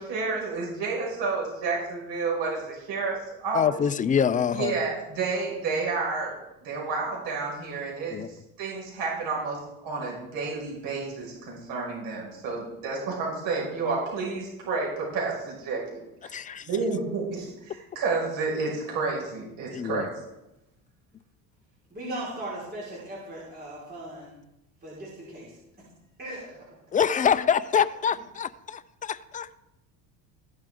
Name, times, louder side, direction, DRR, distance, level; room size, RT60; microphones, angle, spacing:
voice 1, 0.0-3.8 4.5-6.3 6.6-8.2 8.6-16.3 16.6-20.3, right 4 dB, 65° right, 6.0 m, -30 dB
voice 2, 3.5-4.7 8.1-8.3 16.3-16.7 19.7-20.1 26.9-29.5, left 7 dB, 20° left, 0.5 m, -25 dB
voice 3, 21.9-24.3 24.8-25.6 26.2-26.7, right 1 dB, 25° right, 5.2 m, -38 dB
16.0 x 11.0 x 3.8 m
cardioid pair, 120°, 39 cm